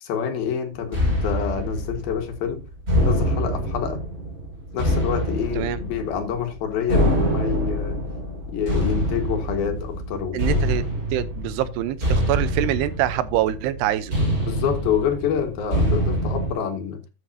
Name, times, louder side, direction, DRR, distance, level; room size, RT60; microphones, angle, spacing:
voice 1, 0.0-2.6 3.1-4.0 4.7-8.0 8.5-10.6 14.4-17.0, left 7 dB, 65° left, 3.2 m, -27 dB
sound 1, 0.9-16.5, equal, 20° right, 5.6 m, -25 dB
voice 2, 10.3-10.8 11.1-14.2, right 13 dB, 85° right, 2.8 m, -25 dB
14.0 x 8.0 x 2.8 m
omnidirectional pair, 4.8 m